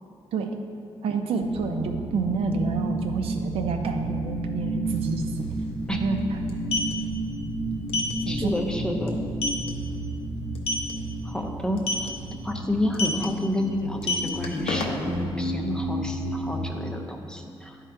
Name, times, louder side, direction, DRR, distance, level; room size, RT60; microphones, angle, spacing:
voice 1, 1.0-5.5 5.9-6.6 8.2-8.5, right 4 dB, 85° right, 4 dB, 0.6 m, -28 dB
sound 1, 1.4-16.7, right 1 dB, 55° left, 0.8 m, -32 dB
sound 2, 4.9-5.0 5.2-5.4 6.4-6.9 7.9-8.1 8.6-8.7 9.1-9.2 9.4-9.7 10.5-10.9 11.8-12.1 12.9-13.2 13.9-15.2, left 3 dB, 90° left, 0.8 m, -27 dB
voice 2, 8.3-9.2 11.2-12.1 12.4-17.8, left 1 dB, 10° left, 3 dB, 0.5 m, -29 dB
10.5 x 3.7 x 4.5 m, 2.3 s
wide cardioid pair, 155°, 10 cm